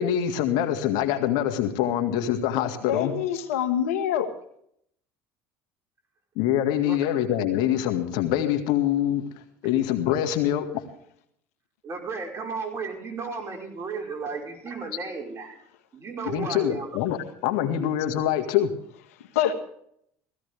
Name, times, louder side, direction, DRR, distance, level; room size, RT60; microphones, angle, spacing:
voice 1, 0.0-3.1 6.4-9.3 9.6-10.8 16.2-18.7, left 11 dB, 70° left, 6 dB, 2.0 m, -25 dB
voice 2, 2.9-4.3 19.1-19.5, left 10 dB, 90° left, 8 dB, 1.6 m, -25 dB
voice 3, 11.8-15.6 15.9-17.0, right 4 dB, 35° right, 2 dB, 5.2 m, -34 dB
16.5 x 16.5 x 3.5 m, 0.69 s
supercardioid pair, 90°, 8 cm